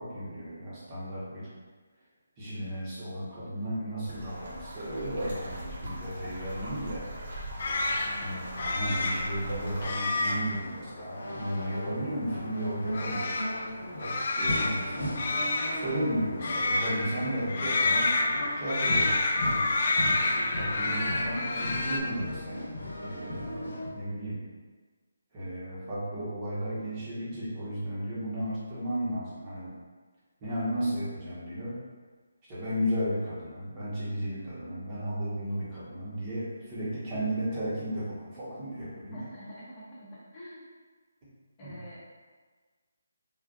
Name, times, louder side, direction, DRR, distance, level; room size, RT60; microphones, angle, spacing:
voice 1, 0.0-1.5 2.4-7.1 8.2-13.3 14.0-15.2 15.7-18.1 18.6-19.1 20.0-22.7 23.0-24.4 25.3-29.7 30.4-31.8 32.5-39.3 41.2-41.3 41.6-41.8, equal, 25° right, -9 dB, 0.9 m, -34 dB
sound 1, 4.0-9.9, right 1 dB, 55° right, 1.0 m, -41 dB
sound 2, 7.6-22.0, left 2 dB, 50° left, 0.3 m, -30 dB
voice 2, 8.0-8.5 39.1-40.6 41.6-42.0, equal, 25° left, -8 dB, 0.8 m, -46 dB
sound 3, 10.4-23.9, left 1 dB, 80° left, 0.9 m, -38 dB
3.7 x 2.4 x 2.4 m, 1.4 s
figure-of-eight pair, 155°, 0 cm